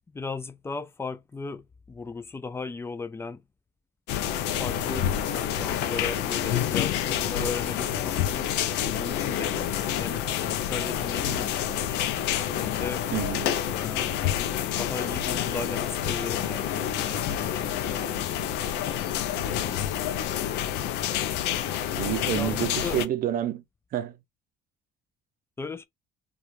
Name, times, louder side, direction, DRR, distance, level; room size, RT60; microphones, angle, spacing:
voice 1, 0.1-3.4 4.6-8.5 8.9-12.0 12.6-13.0 13.7-14.2 14.7-18.2 22.4-23.0 25.6-25.9, left 4 dB, 15° left, 0.4 m, -36 dB
sound 1, 4.1-23.1, left 10 dB, 90° left, 0.4 m, -28 dB
voice 2, 13.1-13.5 19.6-19.7 22.0-23.6 23.9-24.1, right 12 dB, 60° right, 0.5 m, -28 dB
3.0 x 2.3 x 2.5 m
cardioid pair, 110°, 17 cm